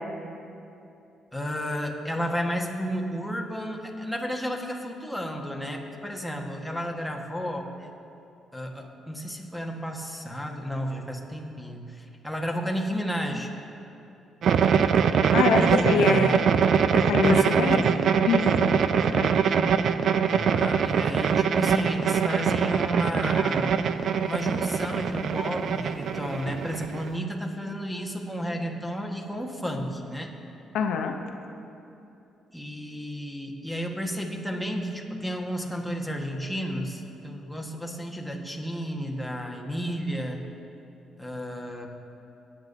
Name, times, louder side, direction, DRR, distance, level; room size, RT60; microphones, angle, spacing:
voice 1, 1.3-7.9 8.5-13.5 15.4-16.5 17.2-17.5 20.2-23.8 24.2-30.3 32.5-40.4 41.2-41.9, equal, ahead, 0 dB, 1.4 m, -32 dB
sound 1, 14.4-27.2, right 7 dB, 65° right, 0.4 m, -23 dB
voice 2, 15.3-16.3 16.9-17.9 18.3-19.3 30.7-31.2, left 6 dB, 85° left, 4 dB, 0.6 m, -25 dB
20.0 x 8.7 x 2.7 m, 2.8 s
cardioid pair, 90°, 0 cm